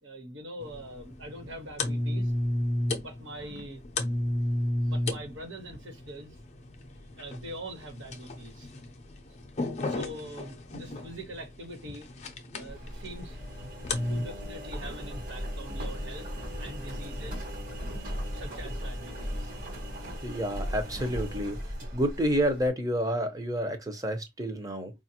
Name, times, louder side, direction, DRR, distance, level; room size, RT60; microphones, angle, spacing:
voice 1, 0.0-2.3 3.0-3.8 4.8-6.4 7.2-8.7 9.7-12.1 12.5-13.7 14.1-17.5 18.3-19.5 19.9-20.1, right 1 dB, 90° right, 1.3 m, -43 dB
sound 1, 0.6-14.2, left 1 dB, 35° left, 0.6 m, -34 dB
Engine, 12.7-22.7, equal, 45° right, 1.3 m, -37 dB
voice 2, 20.2-21.6 21.9-24.9, equal, 20° right, 0.7 m, -29 dB
4.9 x 2.5 x 2.8 m
head